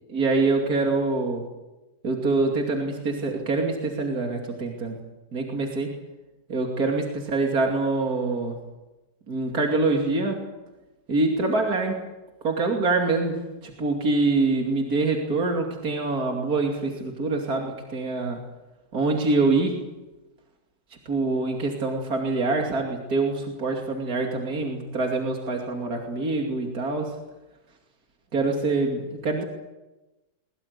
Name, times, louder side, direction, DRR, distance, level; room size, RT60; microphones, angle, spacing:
voice 1, 0.1-1.4 2.0-5.0 5.3-6.0 6.5-8.6 9.3-10.4 11.1-12.0 12.4-18.4 18.9-19.8 21.1-27.2 28.3-29.4, right 3 dB, 60° right, 1 dB, 3.2 m, -25 dB
22.5 x 22.0 x 8.4 m, 1.1 s
omnidirectional pair, 1.8 m